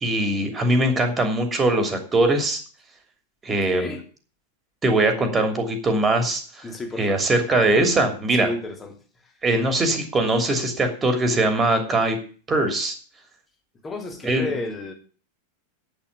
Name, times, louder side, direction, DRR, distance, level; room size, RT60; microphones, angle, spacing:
voice 1, 0.0-2.6 3.4-3.9 4.8-6.6 7.0-8.5 9.4-12.2 12.5-12.9 14.2-14.5, right 2 dB, 15° right, 6 dB, 3.0 m, -21 dB
voice 2, 3.5-4.0 6.6-7.3 7.6-7.9 8.3-9.3 13.8-14.9, left 2 dB, 15° left, 3 dB, 3.1 m, -32 dB
8.7 x 8.7 x 8.3 m, 0.40 s
figure-of-eight pair, 90°, 0 cm